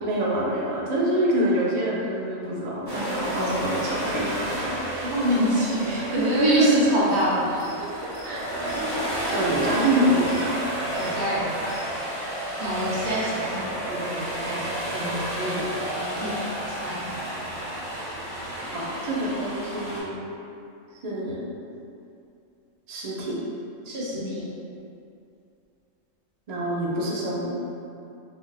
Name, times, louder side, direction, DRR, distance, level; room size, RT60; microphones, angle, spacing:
voice 1, 0.0-5.1 6.1-6.8 8.2-8.4 9.3-10.9 18.7-20.4 21.0-21.4 22.9-23.4 26.5-27.5, right 1 dB, 85° right, -5 dB, 0.3 m, -25 dB
sound 1, 2.9-20.0, right 1 dB, 25° right, 1.1 m, -31 dB
voice 2, 5.0-7.9 8.2-8.7 11.0-11.6 12.6-14.6 14.9-15.6 16.1-16.3 16.8-17.0 23.8-24.5, equal, 60° right, -7 dB, 1.0 m, -27 dB
sound 2, 6.5-6.7 7.0-11.9, left 1 dB, 85° left, 1.0 m, -48 dB
2.5 x 2.4 x 3.1 m, 2.6 s
omnidirectional pair, 1.4 m